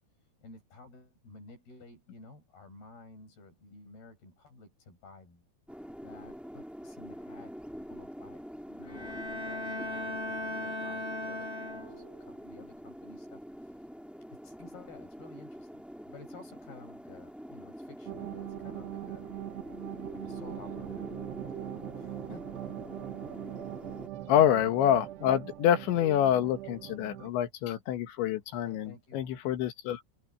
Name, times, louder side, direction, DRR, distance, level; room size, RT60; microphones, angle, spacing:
voice 1, 0.4-5.5 6.0-7.5 7.8-8.4 8.7-13.8 14.3-15.8 16.1-19.3 20.1-22.7 28.6-29.2, left 3 dB, 60° left, 9.2 m, -53 dB
sound 1, 5.7-24.1, equal, ahead, 0.7 m, -45 dB
Bowed string instrument, 8.9-12.3, left 1 dB, 25° left, 1.6 m, -37 dB
Soft Atmosphere, 18.1-27.3, right 15 dB, 75° right, 3.2 m, -41 dB
voice 2, 24.3-30.0, left 10 dB, 85° left, 3.9 m, -27 dB
open air
omnidirectional pair, 5.1 m